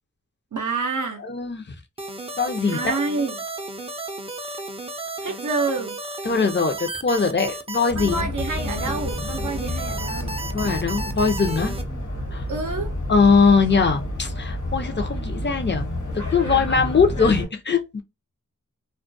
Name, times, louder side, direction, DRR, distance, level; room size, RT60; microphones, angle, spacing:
voice 1, 0.5-1.2 2.7-3.4 5.2-6.0 8.0-10.4 12.5-12.9, right 3 dB, 65° right, 0.5 m, -28 dB
voice 2, 1.2-1.7 2.4-2.9 6.2-8.3 10.5-11.7 12.3-12.4 13.1-18.0, left 5 dB, 35° left, 0.6 m, -21 dB
sound 1, 2.0-11.8, right 2 dB, 20° right, 0.5 m, -33 dB
sound 2, 7.9-17.5, left 1 dB, 60° left, 1.2 m, -29 dB
2.3 x 2.1 x 2.6 m
wide cardioid pair, 45°, 33 cm